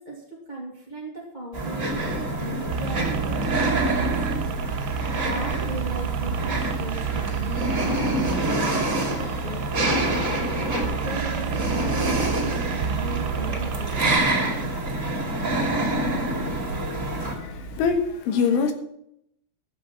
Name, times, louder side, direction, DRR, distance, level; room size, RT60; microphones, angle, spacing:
voice 1, 0.0-4.5 5.1-10.1 10.9-14.1, right 1 dB, 30° left, -4 dB, 0.8 m, -37 dB
sound 1, 1.5-17.3, right 2 dB, 25° right, 2.0 m, -27 dB
sound 2, 1.9-17.9, equal, 70° left, 6.3 m, -36 dB
sound 3, 2.7-14.2, right 11 dB, 85° right, 2.5 m, -31 dB
voice 2, 17.2-18.7, left 5 dB, 85° left, 6 dB, 3.9 m, -24 dB
13.0 x 7.4 x 7.3 m, 0.77 s
omnidirectional pair, 5.5 m